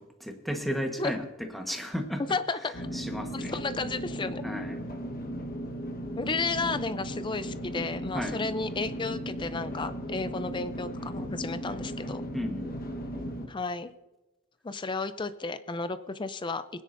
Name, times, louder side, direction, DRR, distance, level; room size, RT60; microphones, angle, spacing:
voice 1, 0.0-2.4 2.9-3.5 4.4-4.8 8.1-8.4 12.3-12.7, equal, ahead, 3 dB, 1.2 m, -34 dB
voice 2, 2.3-2.9 3.3-4.4 6.2-12.2 13.5-13.9 14.6-16.6, left 3 dB, 20° left, 12 dB, 0.4 m, -33 dB
sound 1, 2.7-13.5, equal, 40° left, 1.2 m, -36 dB
23.0 x 10.0 x 2.6 m, 1.1 s
head